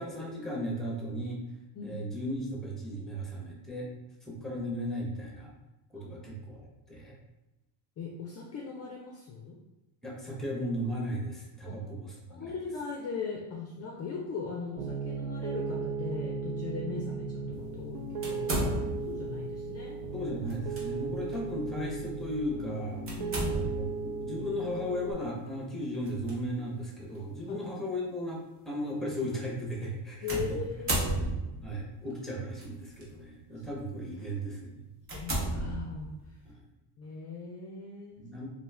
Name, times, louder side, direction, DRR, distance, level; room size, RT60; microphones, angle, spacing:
voice 1, 0.0-1.4 1.8-3.9 4.3-5.5 5.9-7.2 10.0-12.5 20.1-23.0 23.5-28.4 28.7-30.4 31.6-34.8 36.4-36.6 38.2-38.5, equal, ahead, -2 dB, 0.7 m, -36 dB
voice 2, 8.0-9.6 11.7-11.8 12.3-18.7 19.1-20.0 23.2-23.6 27.5-27.7 30.2-31.3 35.1-36.1 37.0-38.2, left 5 dB, 35° left, -2 dB, 0.4 m, -39 dB
Piano, 14.8-25.1, right 4 dB, 70° right, 0.6 m, -36 dB
sound 1, 18.2-19.2 20.5-20.8 21.3-21.4 23.1-23.9 26.0-26.3 27.1-27.2 30.3-31.7 32.6-33.0 33.6-33.8 34.3-34.4 35.0-36.3, right 1 dB, 30° right, 0.9 m, -33 dB
2.4 x 2.2 x 3.2 m, 1.0 s
cardioid pair, 105°, 43 cm